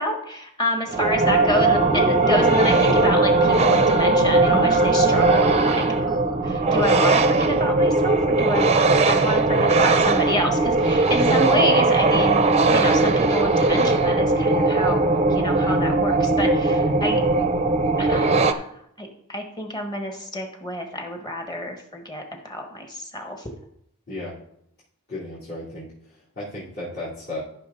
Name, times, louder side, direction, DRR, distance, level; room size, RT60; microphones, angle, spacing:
voice 1, 0.0-8.8 9.1-17.2 18.0-18.7 19.0-23.5, left 1 dB, 20° left, 3 dB, 1.5 m, -28 dB
sound 1, 0.9-18.5, right 3 dB, 30° right, 0.5 m, -19 dB
voice 2, 25.1-27.4, left 2 dB, 50° left, -12 dB, 3.3 m, -35 dB
13.5 x 5.9 x 3.9 m, 0.72 s
head